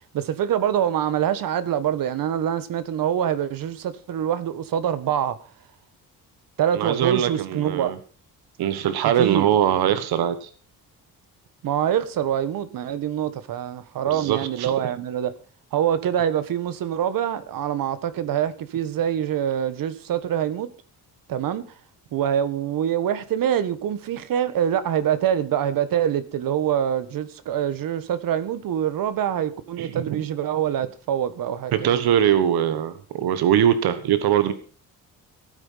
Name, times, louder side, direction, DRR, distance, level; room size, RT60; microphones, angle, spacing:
voice 1, 0.1-5.4 6.6-7.9 9.2-9.5 11.6-15.3 15.7-20.7 21.3-21.6 22.1-31.9, right 9 dB, 65° right, 1.4 m, -25 dB
voice 2, 6.7-8.0 8.6-10.5 14.1-14.7 29.8-30.2 31.7-34.5, right 10 dB, 85° right, 1.5 m, -22 dB
16.0 x 9.1 x 5.6 m
cardioid pair, 175°, 37 cm